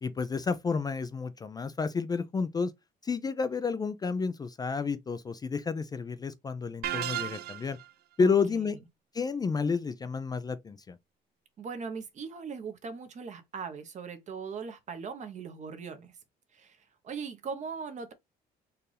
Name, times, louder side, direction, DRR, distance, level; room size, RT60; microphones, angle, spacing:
voice 1, 0.0-2.7 3.0-7.8 8.2-8.8 9.1-11.0, left 5 dB, 25° left, 0.4 m, -30 dB
sound 1, 6.8-7.9, right 11 dB, 65° right, 0.5 m, -34 dB
voice 2, 8.2-8.7 11.6-16.2 16.5-18.1, right 5 dB, 45° right, 1.0 m, -40 dB
4.5 x 2.5 x 3.3 m
cardioid pair, 110°, 17 cm